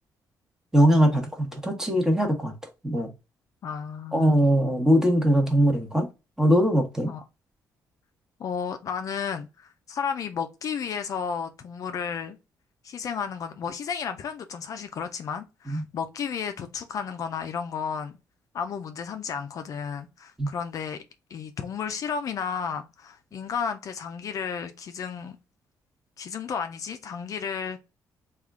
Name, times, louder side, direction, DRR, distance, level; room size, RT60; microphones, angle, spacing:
voice 1, 0.7-2.5 2.8-3.1 4.1-6.1 6.4-7.1 15.7-15.8 20.4-20.5, equal, 10° right, 1.0 m, -21 dB
voice 2, 3.6-4.5 7.1-7.2 8.4-12.4 12.8-18.2 18.5-21.0 21.3-25.4 26.2-27.8, left 6 dB, 50° left, 0.4 m, -33 dB
3.5 x 2.4 x 3.5 m
cardioid pair, 135°, 7 cm